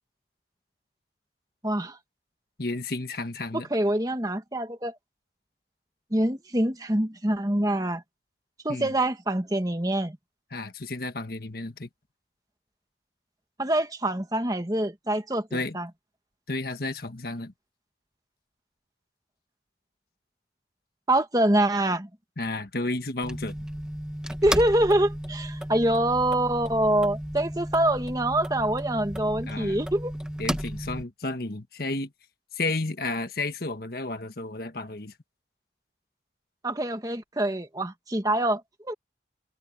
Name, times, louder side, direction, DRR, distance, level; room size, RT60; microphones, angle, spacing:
voice 1, 1.6-2.0 3.5-4.9 6.1-8.0 8.6-10.2 13.6-15.9 21.1-22.1 24.4-30.1 36.6-38.9, right 1 dB, 20° right, 1.6 m, -25 dB
voice 2, 2.6-3.7 8.7-8.9 10.5-11.9 15.5-15.8 16.5-17.5 22.4-23.5 29.5-29.8 30.4-32.1 32.5-35.1, left 2 dB, 55° left, 1.5 m, -32 dB
sound 1, 23.2-31.0, equal, 5° right, 1.2 m, -34 dB
head